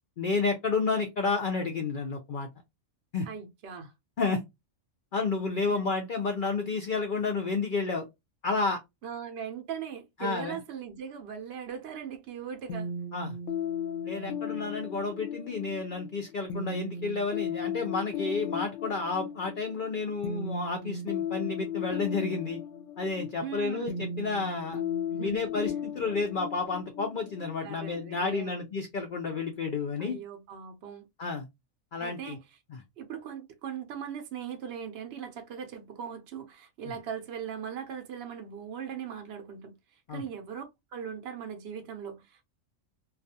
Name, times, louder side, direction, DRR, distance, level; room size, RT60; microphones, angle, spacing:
voice 1, 0.2-2.5 3.1-3.3 4.2-4.4 5.1-8.1 8.4-8.8 10.2-10.6 13.1-13.4 14.0-22.6 23.0-24.8 25.2-30.2 31.2-31.5 31.9-32.4 40.1-40.2, left 4 dB, 85° left, 0.4 m, -31 dB
voice 2, 3.3-3.9 5.7-6.0 9.0-12.9 23.4-24.0 25.1-25.5 27.6-28.6 30.0-31.1 32.0-32.4 33.0-40.6 40.9-42.5, right 8 dB, 65° right, 0.7 m, -39 dB
sound 1, 12.7-28.3, left 6 dB, 70° left, 0.9 m, -36 dB
2.4 x 2.3 x 2.7 m
omnidirectional pair, 1.5 m